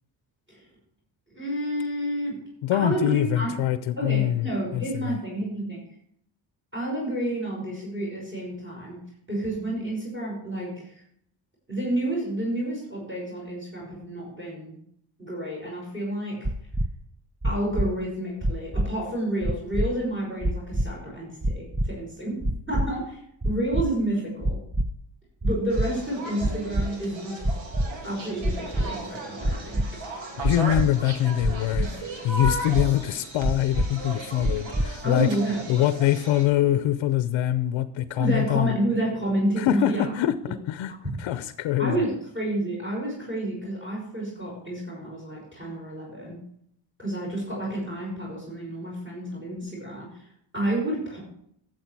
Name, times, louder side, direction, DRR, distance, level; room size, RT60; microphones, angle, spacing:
voice 1, 1.3-2.4 2.7-3.6 4.0-5.8 6.7-9.0 9.3-10.8 11.7-14.8 15.2-16.5 17.4-22.4 22.7-23.2 23.4-24.6 25.4-27.4 28.0-29.8 31.8-31.9 35.0-35.6 38.2-40.0 40.9-41.0 41.8-46.4 47.0-50.1 50.5-51.2, right 1 dB, 25° right, -3 dB, 5.6 m, -30 dB
voice 2, 2.6-5.2 30.4-31.9 32.2-35.3 35.7-38.8 39.6-40.3 40.7-40.9 41.2-41.9, left 12 dB, 85° left, 12 dB, 0.7 m, -24 dB
sound 1, 16.4-16.9 17.4-17.9 18.4-18.9 19.4-19.9 20.4-20.9 21.4-21.9 22.4-22.9 23.4-23.9 24.4-24.9 25.4-25.9 26.4-26.9 27.4-27.9 28.4-28.9 29.4-29.9 30.4-30.9 31.4-31.9 32.4-32.9 33.4-33.9 34.4-34.9, right 1 dB, 10° right, 0.3 m, -24 dB
sound 2, 25.7-36.5, right 2 dB, 85° right, 2.8 m, -37 dB
13.0 x 7.7 x 4.7 m, 0.71 s
cardioid pair, 125°, 45 cm